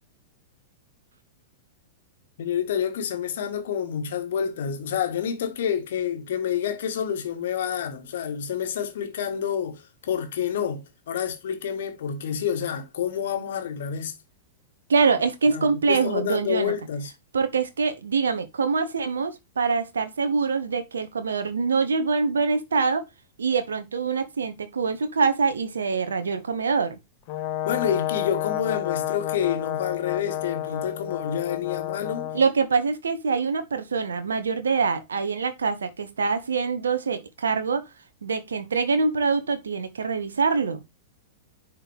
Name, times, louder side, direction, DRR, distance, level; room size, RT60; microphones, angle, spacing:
voice 1, 2.4-14.1 15.5-17.1 27.6-32.3, left 8 dB, 60° left, 1.6 m, -28 dB
voice 2, 14.9-16.7 17.3-23.1 23.4-26.9 32.3-37.9 38.2-40.8, right 4 dB, 70° right, 1.1 m, -24 dB
Brass instrument, 27.3-32.5, left 13 dB, 45° left, 1.1 m, -30 dB
10.0 x 4.2 x 3.5 m
figure-of-eight pair, 100°, 0 cm